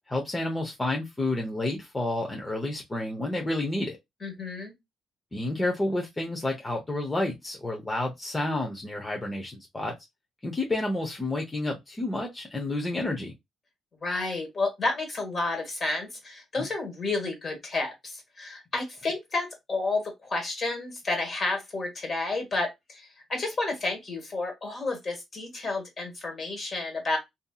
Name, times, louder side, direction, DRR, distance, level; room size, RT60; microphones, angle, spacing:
voice 1, 0.1-4.0 5.3-9.9 10.4-13.3 16.6-16.7, left 2 dB, 20° left, 0.6 m, -30 dB
voice 2, 4.2-4.7 14.0-27.2, left 3 dB, 40° left, 1.4 m, -31 dB
2.7 x 2.6 x 2.3 m
cardioid pair, 90°, 0 cm